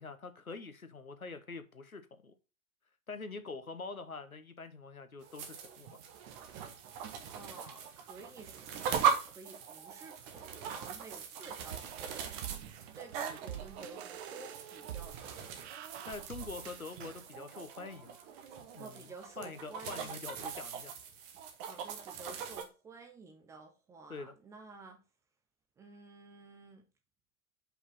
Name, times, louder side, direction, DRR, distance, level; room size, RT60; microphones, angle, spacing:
voice 1, 0.0-2.3 3.1-6.0 16.1-18.2 18.7-20.9 24.1-24.3, left 4 dB, 90° left, 1.0 m, -45 dB
sound 1, 5.2-22.6, right 7 dB, 30° right, 1.2 m, -40 dB
voice 2, 7.3-12.3 12.6-15.8 18.8-20.3 21.6-25.0 25.8-26.8, right 3 dB, 5° right, 0.5 m, -52 dB
sound 2, 11.7-17.3, right 11 dB, 50° right, 0.8 m, -47 dB
5.5 x 4.7 x 5.5 m
figure-of-eight pair, 110°, 41 cm